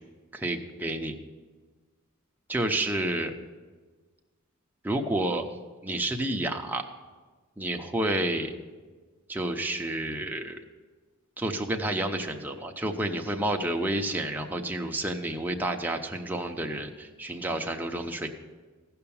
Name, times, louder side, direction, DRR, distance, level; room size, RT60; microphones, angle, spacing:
voice 1, 0.3-1.1 2.5-3.3 4.8-5.4 5.8-6.8 7.6-8.5 9.3-10.6 11.4-18.3, right 1 dB, 10° right, 2 dB, 0.8 m, -30 dB
15.5 x 5.8 x 7.1 m, 1.4 s
head